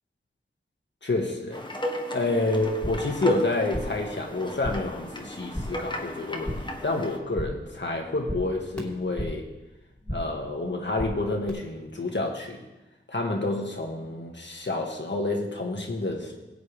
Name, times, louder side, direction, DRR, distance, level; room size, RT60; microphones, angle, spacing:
voice 1, 1.0-1.7 2.1-9.5 10.1-12.6 13.1-16.3, left 2 dB, 60° left, 1 dB, 1.6 m, -29 dB
sound 1, 1.5-7.2, equal, 20° left, 1.4 m, -34 dB
sound 2, 2.7-3.2 3.4-4.1 4.4-5.0 5.3-5.9 6.2-6.8 7.1-7.7 8.0-9.5 9.8-10.4 10.7-11.5, equal, 5° left, 2.5 m, -36 dB
18.0 x 8.1 x 3.4 m, 1.1 s
wide cardioid pair, 50°, 21 cm